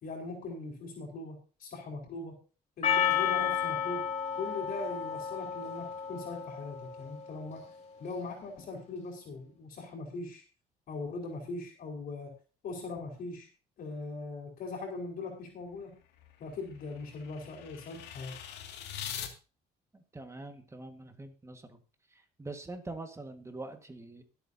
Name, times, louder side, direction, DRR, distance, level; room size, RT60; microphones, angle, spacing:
voice 1, 0.0-2.4 2.8-4.1 4.3-7.6 8.0-10.4 10.9-12.3 12.6-13.5 13.8-16.0 16.4-18.4, left 3 dB, 60° left, 1 dB, 4.4 m, -40 dB
Percussion, 2.8-7.1, left 8 dB, 40° left, 3.3 m, -32 dB
sound 1, 15.7-19.3, left 9 dB, 85° left, 2.3 m, -44 dB
voice 2, 19.9-21.8 22.4-24.2, right 2 dB, 15° right, 6 dB, 1.7 m, -44 dB
22.5 x 8.4 x 2.8 m, 0.34 s
cardioid pair, 110°, 17 cm